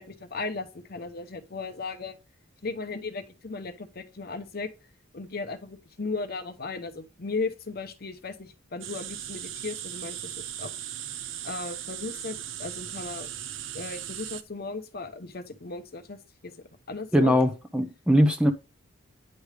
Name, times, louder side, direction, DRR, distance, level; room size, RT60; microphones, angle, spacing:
voice 1, 0.0-2.2 2.6-4.7 5.1-10.7 11.4-13.3 13.7-16.5 16.9-17.4, left 3 dB, 50° left, 0.8 m, -36 dB
sound 1, 8.8-14.4, right 11 dB, 65° right, 0.6 m, -38 dB
voice 2, 17.1-18.5, equal, 5° right, 0.6 m, -21 dB
9.5 x 3.3 x 4.9 m
head